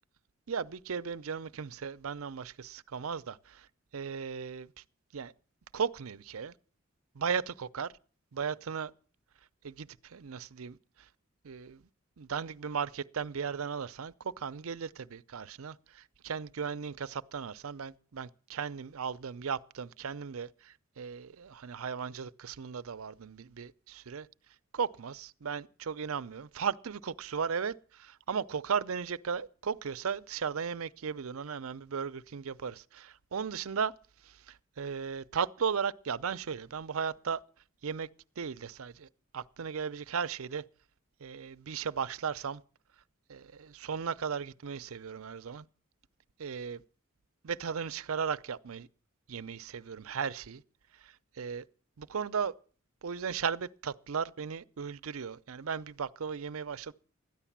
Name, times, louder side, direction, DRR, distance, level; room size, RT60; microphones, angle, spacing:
voice 1, 0.5-3.4 3.9-4.8 5.1-5.3 5.7-6.5 7.1-7.9 8.3-8.9 9.6-10.8 11.4-11.8 12.2-24.3 24.7-33.9 34.2-37.4 37.8-38.1 38.4-39.1 39.3-40.6 41.2-42.6 43.3-45.7 46.4-46.8 47.4-48.9 49.3-50.6 51.0-51.6 52.0-52.5 53.0-56.9, right 6 dB, 90° right, 0.6 m, -36 dB
13.5 x 10.0 x 7.3 m
head